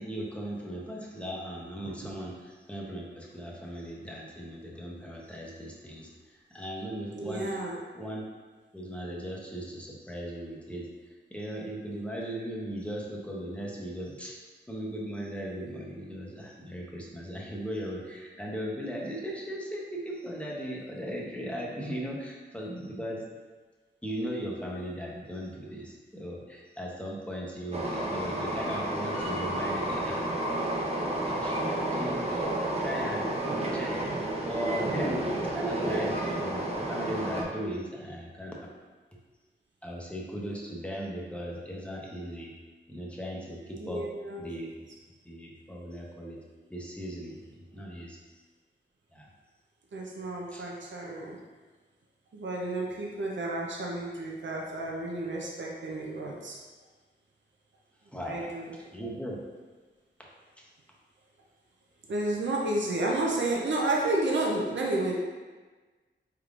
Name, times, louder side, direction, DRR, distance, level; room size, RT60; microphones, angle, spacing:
voice 1, 0.0-7.6 7.9-8.2 8.7-14.3 14.7-23.2 24.0-30.2 31.2-34.1 34.4-38.7 39.8-42.5 42.9-44.0 44.4-44.7 45.2-46.4 46.7-48.2 49.1-49.3 50.5-50.7 58.1-58.5 58.9-59.4 60.6-60.7, equal, 5° left, -3 dB, 0.8 m, -38 dB
voice 2, 7.1-7.8 43.8-44.5 49.9-51.4 52.3-56.6 58.2-58.7 62.1-65.2, right 2 dB, 70° right, -2 dB, 0.6 m, -31 dB
Train, 27.7-37.4, right 1 dB, 35° right, 0.7 m, -31 dB
4.6 x 3.5 x 2.5 m, 1.3 s
wide cardioid pair, 80°, 20 cm